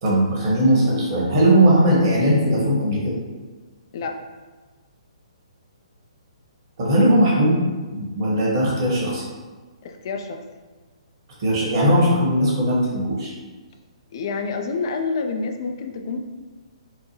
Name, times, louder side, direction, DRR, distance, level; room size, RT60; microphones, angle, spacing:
voice 1, 0.0-3.2 6.8-7.6 7.9-9.3 11.4-13.3, right 1 dB, 45° right, -4 dB, 1.3 m, -19 dB
voice 2, 9.8-10.4 14.1-16.2, left 4 dB, 45° left, 5 dB, 0.4 m, -28 dB
4.5 x 2.1 x 3.2 m, 1.3 s
figure-of-eight pair, 125°, 3 cm